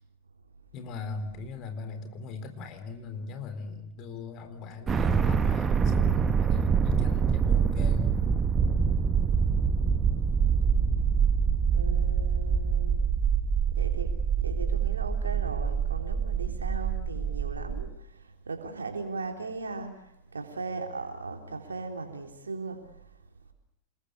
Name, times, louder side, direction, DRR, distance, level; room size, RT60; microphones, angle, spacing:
voice 1, 0.7-8.1, left 5 dB, 40° left, 8 dB, 3.9 m, -39 dB
sound 1, 4.9-17.9, right 6 dB, 20° right, 1.4 m, -25 dB
voice 2, 11.7-13.0 13.7-17.9 18.5-20.0 20.3-22.9, right 3 dB, 75° right, 4 dB, 3.6 m, -38 dB
28.5 x 21.0 x 6.9 m, 0.79 s
figure-of-eight pair, 90°, 0 cm